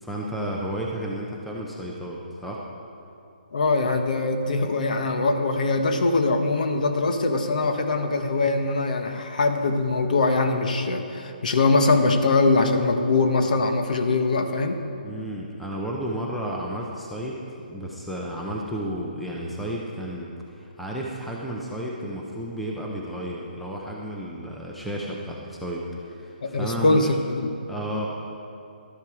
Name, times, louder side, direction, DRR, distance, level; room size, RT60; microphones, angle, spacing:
voice 1, 0.0-2.6 15.0-17.4 17.7-27.0 27.7-28.1, right 1 dB, ahead, -3 dB, 0.5 m, -32 dB
voice 2, 3.5-14.8 26.4-27.5, left 3 dB, 50° left, 6 dB, 1.1 m, -22 dB
12.0 x 10.5 x 4.8 m, 2.6 s
hypercardioid pair, 175°, 5 cm